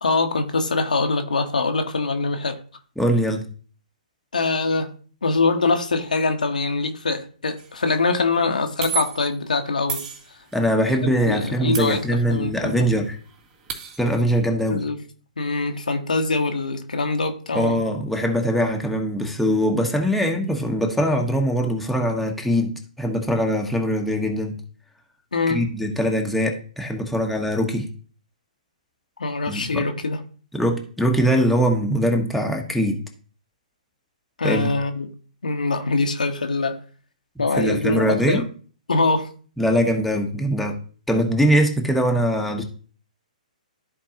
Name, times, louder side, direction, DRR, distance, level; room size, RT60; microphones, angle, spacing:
voice 1, 0.0-2.6 4.3-4.9 5.2-10.0 11.0-12.0 12.3-12.8 14.7-15.0 15.4-17.8 25.3-25.6 29.2-30.2 34.4-35.1 35.4-36.8 37.4-38.4 38.9-39.3, left 3 dB, 80° left, 1.2 m, -23 dB
voice 2, 3.0-3.5 10.5-13.2 14.0-14.8 17.5-24.6 25.5-27.9 29.5-29.8 30.5-33.0 34.4-34.7 37.4-38.4 39.6-40.8 41.1-42.6, equal, ahead, 1.2 m, -22 dB
sound 1, 7.6-7.8 8.8-9.4 9.9-10.7 11.7-12.6 12.9-13.0 13.3-14.2, right 7 dB, 25° right, 2.8 m, -32 dB
13.5 x 4.6 x 2.9 m
hypercardioid pair, 125°, 4 cm